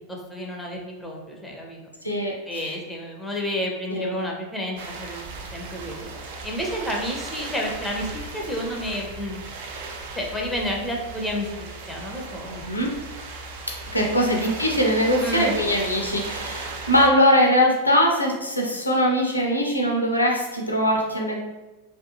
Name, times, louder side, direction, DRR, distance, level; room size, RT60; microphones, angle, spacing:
voice 1, 0.1-1.8 2.5-5.2 5.5-6.1 6.4-9.5 10.1-12.8 14.7-14.8 15.2-15.5, left 1 dB, 5° left, 0 dB, 0.5 m, -30 dB
voice 2, 2.0-2.7 3.9-4.1 12.5-13.0 13.7-21.4, equal, 85° left, 0 dB, 0.5 m, -22 dB
sound 1, 4.8-17.1, right 3 dB, 55° right, 0.4 m, -36 dB
2.5 x 2.4 x 2.6 m, 1.1 s
figure-of-eight pair, 90°, 0 cm